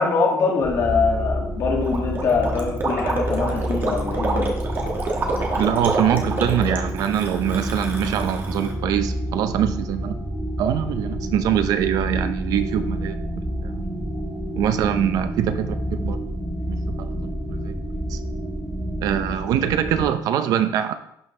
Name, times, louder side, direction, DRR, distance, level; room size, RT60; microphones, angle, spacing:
voice 1, 0.0-4.5, left 4 dB, 45° left, -1 dB, 2.0 m, -23 dB
sound 1, 0.6-20.1, equal, 5° right, 3.1 m, -29 dB
Gurgling, 1.8-8.7, right 3 dB, 30° right, 1.3 m, -27 dB
voice 2, 5.6-10.2 10.6-13.7 14.6-16.2 16.7-17.7 18.1-18.2 19.0-20.9, right 10 dB, 60° right, 10 dB, 0.6 m, -23 dB
11.5 x 5.4 x 3.2 m, 0.78 s
cardioid pair, 165°, 7 cm